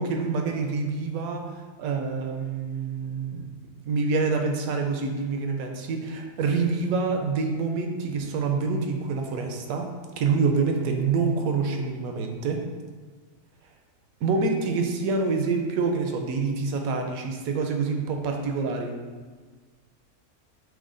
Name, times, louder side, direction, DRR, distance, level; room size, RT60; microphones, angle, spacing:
voice 1, 0.0-3.5 3.8-9.9 10.2-12.6 14.2-18.9, right 4 dB, 75° right, 3 dB, 1.0 m, -26 dB
6.1 x 2.2 x 3.8 m, 1.4 s
omnidirectional pair, 1.6 m